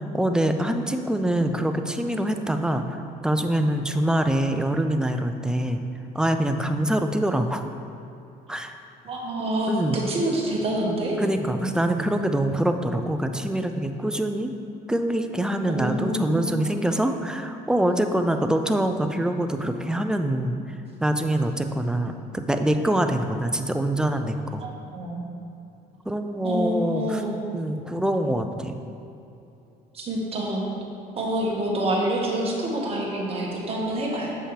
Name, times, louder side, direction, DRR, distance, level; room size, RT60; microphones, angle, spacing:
voice 1, 0.1-5.8 6.1-7.6 8.5-8.7 9.7-10.0 11.2-14.5 14.9-24.6 26.1-27.2 27.5-28.8, right 1 dB, 5° right, 6 dB, 0.4 m, -25 dB
voice 2, 9.0-11.2 15.7-16.5 24.6-25.3 26.4-27.4 29.9-30.6 31.1-34.3, right 1 dB, 35° right, -3 dB, 1.4 m, -27 dB
7.3 x 5.4 x 3.3 m, 2.8 s
cardioid pair, 110°, 17 cm